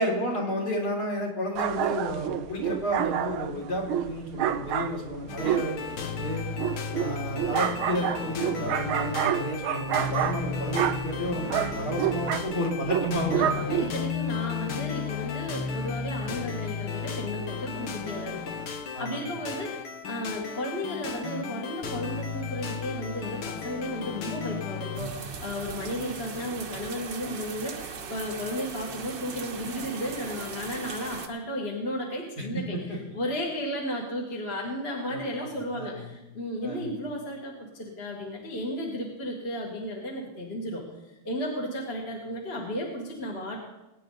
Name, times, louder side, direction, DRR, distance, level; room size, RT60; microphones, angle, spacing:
voice 1, 0.0-6.5 6.9-13.7 18.9-19.4 32.4-33.0 35.1-36.0 36.6-36.9, equal, 50° left, -3 dB, 4.2 m, -31 dB
sound 1, 1.6-14.2, right 10 dB, 85° right, 1.6 m, -29 dB
sound 2, 5.3-25.0, left 6 dB, 75° left, 2.1 m, -34 dB
voice 2, 13.3-18.6 19.0-40.8 41.2-43.6, equal, 30° left, -2 dB, 2.1 m, -34 dB
temporale-mix-prova, 24.9-31.3, right 5 dB, 60° right, 1.8 m, -39 dB
22.5 x 10.0 x 4.0 m, 1.0 s
omnidirectional pair, 2.2 m